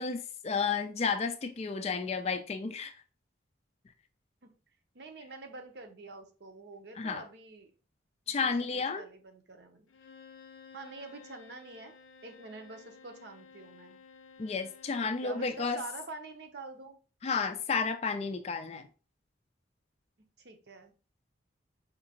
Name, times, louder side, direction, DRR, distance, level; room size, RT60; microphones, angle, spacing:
voice 1, 0.0-2.9 7.0-7.2 8.3-9.0 14.4-15.8 17.2-18.9, left 5 dB, 35° left, 0.3 m, -32 dB
voice 2, 4.9-7.7 8.3-8.4 8.7-9.9 10.7-11.9 12.2-14.0 15.2-17.0 20.4-20.9, right 3 dB, 60° right, 0.7 m, -46 dB
Bowed string instrument, 9.9-15.8, left 5 dB, 85° left, 0.5 m, -54 dB
5.1 x 2.7 x 2.8 m
head